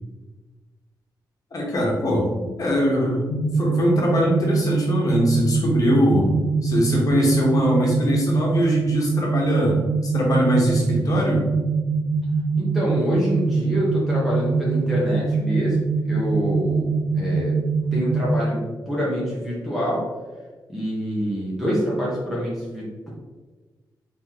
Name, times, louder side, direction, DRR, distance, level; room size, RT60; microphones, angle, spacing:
voice 1, 1.5-3.2 3.5-6.3 6.6-11.5, equal, 50° left, -2 dB, 1.4 m, -22 dB
sound 1, 3.3-18.3, right 4 dB, 65° left, 0.6 m, -23 dB
voice 2, 12.5-15.8 16.1-16.9 17.1-17.6 17.9-20.0 20.7-23.1, equal, 5° right, -7 dB, 1.3 m, -26 dB
3.9 x 3.8 x 3.1 m, 1.3 s
cardioid pair, 90°, 8 cm